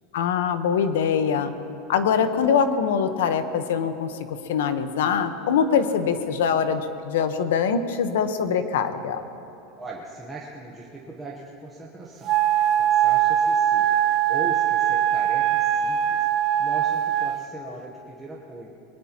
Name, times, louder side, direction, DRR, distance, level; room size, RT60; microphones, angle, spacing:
voice 1, 0.1-1.5 1.9-9.2, left 7 dB, 85° left, 9 dB, 1.0 m, -23 dB
voice 2, 9.8-12.3 12.7-14.0 14.3-16.3 16.6-18.7, right 2 dB, 5° right, -4 dB, 1.0 m, -39 dB
Wind instrument woodwind instrument, 12.2-17.5, right 10 dB, 25° right, 0.4 m, -21 dB
22.0 x 19.0 x 3.0 m, 2.8 s
supercardioid pair, 175°, 0 cm